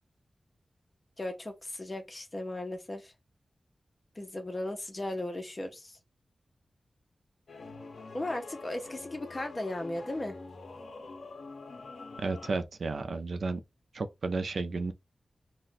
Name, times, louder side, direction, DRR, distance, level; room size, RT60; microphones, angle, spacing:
voice 1, 1.2-3.1 4.2-6.0 8.1-10.4, left 1 dB, 30° left, 0.7 m, -36 dB
sound 1, 7.5-12.6, left 3 dB, 75° left, 0.5 m, -45 dB
voice 2, 12.2-13.6 13.9-14.9, right 3 dB, 70° right, 0.4 m, -32 dB
2.4 x 2.1 x 3.9 m
wide cardioid pair, 115°, 0 cm